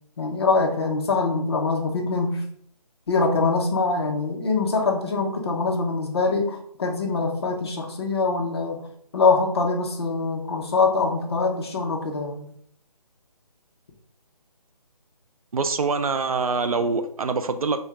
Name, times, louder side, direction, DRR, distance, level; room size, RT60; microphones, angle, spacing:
voice 1, 0.2-2.4 3.1-8.8 9.1-12.5, left 3 dB, 40° left, 0.9 m, -23 dB
voice 2, 15.5-17.8, right 4 dB, 60° right, 0.5 m, -24 dB
4.5 x 2.3 x 4.7 m
figure-of-eight pair, 165°, 20 cm